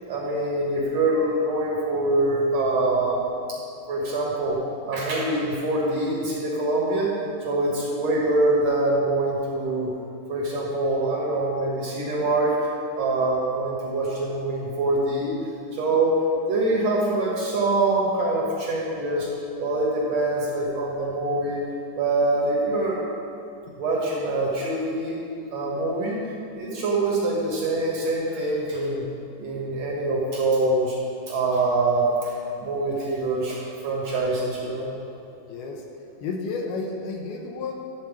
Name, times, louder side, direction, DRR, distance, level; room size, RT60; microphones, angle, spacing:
voice 1, 0.1-3.6 3.9-4.6 4.8-7.1 7.4-9.9 10.3-15.3 15.7-16.2 16.5-19.3 19.6-21.6 22.0-23.0 23.8-25.2 25.5-26.2 26.5-29.0 29.4-31.0 31.3-34.9, right 2 dB, 60° right, -4 dB, 1.9 m, -24 dB
voice 2, 35.5-35.8 36.2-37.7, left 4 dB, 75° left, 1 dB, 2.6 m, -31 dB
12.5 x 4.3 x 7.3 m, 2.7 s
omnidirectional pair, 4.7 m